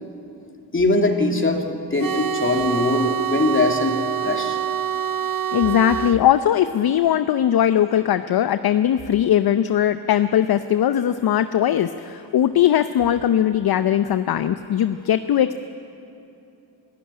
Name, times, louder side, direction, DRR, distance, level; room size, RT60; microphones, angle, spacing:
voice 1, 0.7-4.0 4.2-4.6, left 2 dB, 25° left, 3 dB, 2.7 m, -21 dB
sound 1, 2.0-6.2, right 8 dB, 50° right, 0.8 m, -25 dB
voice 2, 5.5-15.6, left 10 dB, 55° left, 12 dB, 0.7 m, -19 dB
25.5 x 13.0 x 9.9 m, 2.8 s
cardioid pair, 70°, 45 cm